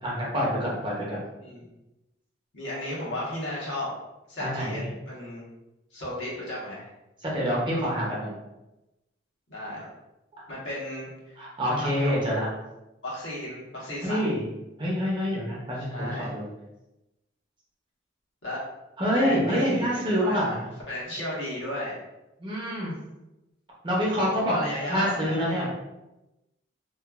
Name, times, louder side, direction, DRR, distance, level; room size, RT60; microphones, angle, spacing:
voice 1, 0.0-1.2 4.4-4.9 7.2-8.3 11.4-12.5 14.0-14.5 14.8-16.5 19.0-20.6 22.4-23.0 23.8-24.5 24.9-25.7, equal, 25° right, -4 dB, 0.7 m, -26 dB
voice 2, 2.5-3.9 4.3-5.4 5.9-6.9 9.5-9.9 10.5-11.4 11.7-12.1 13.0-14.2 15.8-16.3 18.4-18.6 19.1-20.6 20.9-22.0 24.4-25.7, left 1 dB, 80° left, -6 dB, 1.1 m, -34 dB
3.0 x 2.2 x 2.3 m, 0.98 s
head